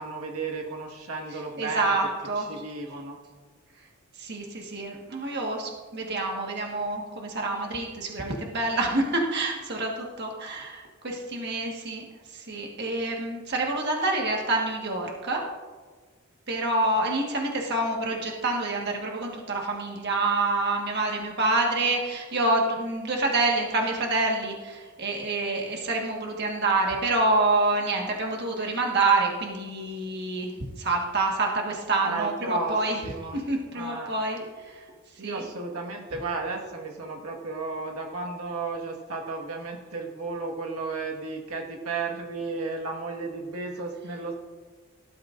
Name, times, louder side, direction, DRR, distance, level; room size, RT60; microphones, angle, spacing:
voice 1, 0.0-2.0 2.4-3.2 32.0-32.8 33.0-33.4 33.7-34.1 35.2-44.3, right 3 dB, 85° right, 1 dB, 1.7 m, -34 dB
voice 2, 1.6-2.4 4.2-9.9 10.2-12.0 12.3-15.4 16.5-30.5 30.8-33.0 33.3-34.4 34.7-34.8 35.2-35.4, right 2 dB, 50° right, 0 dB, 1.5 m, -27 dB
18.0 x 12.5 x 2.6 m, 1.4 s
head